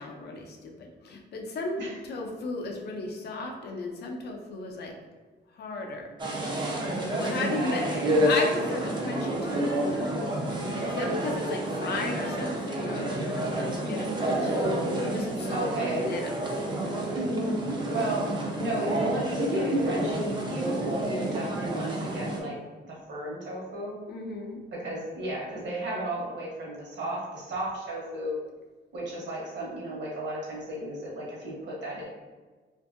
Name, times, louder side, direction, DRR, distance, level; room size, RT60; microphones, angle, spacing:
voice 1, 0.0-5.0 5.5-6.1 6.7-7.8 8.2-10.1 10.6-14.7 15.1-16.3 24.1-24.6, left 2 dB, 60° left, 2 dB, 0.5 m, -35 dB
sound 1, 6.2-22.4, right 1 dB, 25° right, 0.4 m, -29 dB
voice 2, 7.4-8.2 15.5-16.0 17.9-18.3 18.6-22.6 22.8-23.9 24.7-28.4 28.9-32.1, right 1 dB, 65° right, -4 dB, 1.0 m, -34 dB
2.6 x 2.5 x 2.4 m, 1.3 s
wide cardioid pair, 160°, 19 cm